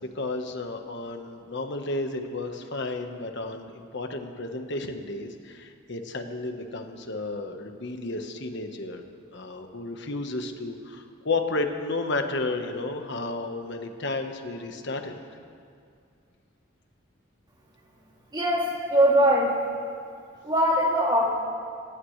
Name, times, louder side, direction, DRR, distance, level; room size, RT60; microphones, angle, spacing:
voice 1, 0.0-9.0 9.3-15.1, left 2 dB, 60° left, 5 dB, 1.4 m, -32 dB
voice 2, 18.3-19.5 20.4-21.3, right 1 dB, 20° right, -3 dB, 2.8 m, -21 dB
27.5 x 15.5 x 3.3 m, 2.3 s
head